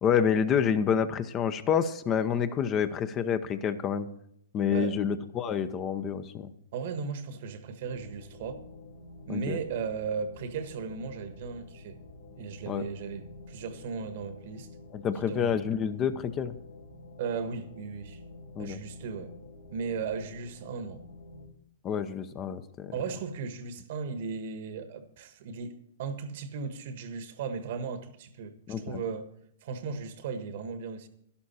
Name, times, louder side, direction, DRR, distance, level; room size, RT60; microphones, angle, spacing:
voice 1, 0.0-4.1 4.5-6.5 9.3-9.6 12.7-12.9 14.9-16.5 18.6-18.8 21.8-22.9 28.7-29.0, left 7 dB, 30° left, 0.8 m, -28 dB
voice 2, 6.7-8.6 9.3-12.0 12.3-14.7 15.3-15.5 17.2-18.2 18.6-19.3 19.7-21.0 22.9-29.3 29.6-31.1, right 5 dB, 55° right, 1.4 m, -36 dB
sound 1, 7.8-21.5, left 2 dB, 85° left, 4.1 m, -49 dB
12.0 x 11.5 x 4.3 m
hypercardioid pair, 120°, 0 cm